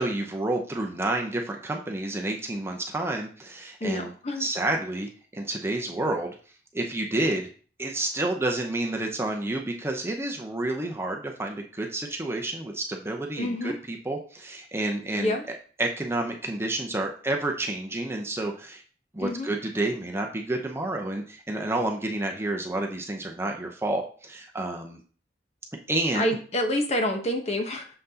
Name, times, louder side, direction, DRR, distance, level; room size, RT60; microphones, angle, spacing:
voice 1, 0.0-4.1 4.4-6.4 6.7-7.5 7.8-15.4 15.8-18.8 19.1-25.0 25.9-26.3, right 2 dB, 15° right, 2 dB, 0.7 m, -29 dB
voice 2, 3.8-4.4 13.4-13.8 15.2-15.4 19.2-19.5 26.1-27.9, left 1 dB, 40° left, 4 dB, 0.9 m, -27 dB
6.7 x 5.8 x 2.8 m, 0.40 s
head